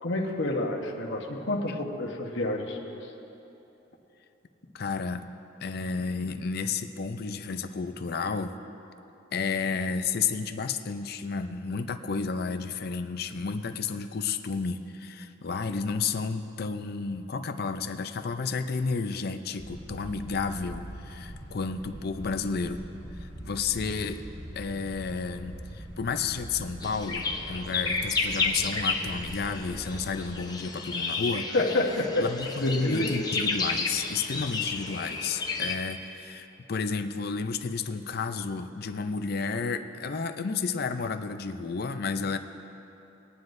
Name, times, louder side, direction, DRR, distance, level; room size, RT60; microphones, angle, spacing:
voice 1, 0.0-3.1 31.5-32.3 32.6-33.1, left 2 dB, 70° left, 0 dB, 1.1 m, -29 dB
voice 2, 4.7-5.2 5.6-8.5 9.3-22.8 23.2-24.2 24.6-31.5 32.2-42.4, left 5 dB, 55° left, 9 dB, 0.5 m, -31 dB
sound 1, 19.6-30.4, right 1 dB, 80° right, 1.4 m, -42 dB
sound 2, 26.8-35.8, left 4 dB, 20° left, 0.8 m, -32 dB
21.0 x 9.5 x 2.6 m, 3.0 s
head